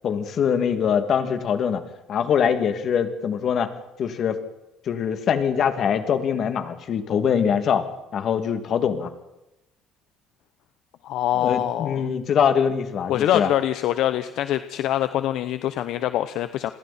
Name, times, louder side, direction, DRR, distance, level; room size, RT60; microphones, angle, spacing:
voice 1, 0.0-1.8 2.1-3.7 4.0-4.4 4.9-7.8 8.1-9.1 11.4-13.5, left 7 dB, 45° left, 7 dB, 2.5 m, -23 dB
voice 2, 11.0-12.1 13.1-16.7, left 12 dB, 65° left, 11 dB, 0.9 m, -24 dB
29.5 x 22.0 x 4.4 m, 0.92 s
cardioid pair, 140°, 0 cm